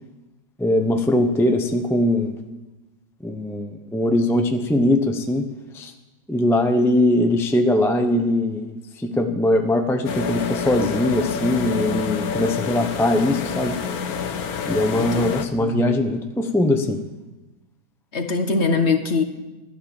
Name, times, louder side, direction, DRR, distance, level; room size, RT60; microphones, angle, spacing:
voice 1, 0.6-2.3 3.2-5.5 5.7-5.9 6.3-13.8 14.7-17.0, left 1 dB, ahead, 5 dB, 0.6 m, -21 dB
sound 1, 10.0-15.5, left 6 dB, 60° left, 1.3 m, -27 dB
voice 2, 18.1-19.2, left 4 dB, 40° left, 7 dB, 1.4 m, -22 dB
15.5 x 11.5 x 7.3 m, 1.1 s
omnidirectional pair, 1.9 m